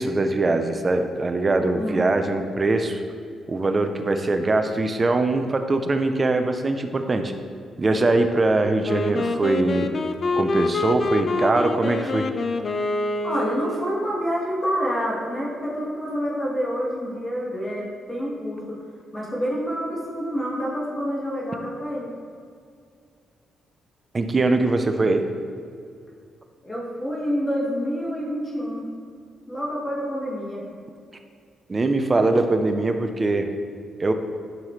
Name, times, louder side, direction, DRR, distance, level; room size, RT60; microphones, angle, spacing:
voice 1, 0.0-3.0 3.5-7.3 7.8-9.9 10.3-12.3 24.1-25.3 31.7-33.5 34.0-34.1, right 2 dB, 25° right, 7 dB, 0.6 m, -22 dB
voice 2, 1.8-2.2 13.2-18.8 19.1-22.1 26.6-28.9 29.5-30.6, equal, 25° left, -5 dB, 1.8 m, -28 dB
Wind instrument woodwind instrument, 8.8-14.0, left 2 dB, 45° left, 0.4 m, -26 dB
10.5 x 5.6 x 3.2 m, 2.3 s
cardioid pair, 110°, 0 cm